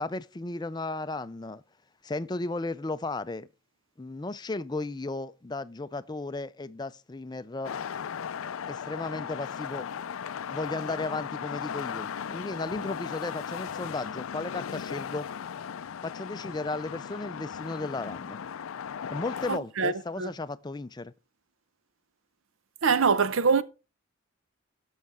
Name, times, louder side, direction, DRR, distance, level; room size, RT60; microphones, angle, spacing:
voice 1, 0.0-1.6 2.0-3.5 4.0-7.7 8.7-9.9 10.5-15.3 16.0-18.4 19.1-21.1, left 2 dB, 20° left, 0.4 m, -35 dB
sound 1, 7.6-19.6, left 7 dB, 85° left, 0.4 m, -37 dB
voice 2, 19.5-20.3 22.8-23.6, right 5 dB, 75° right, 0.7 m, -24 dB
16.5 x 6.4 x 3.6 m
head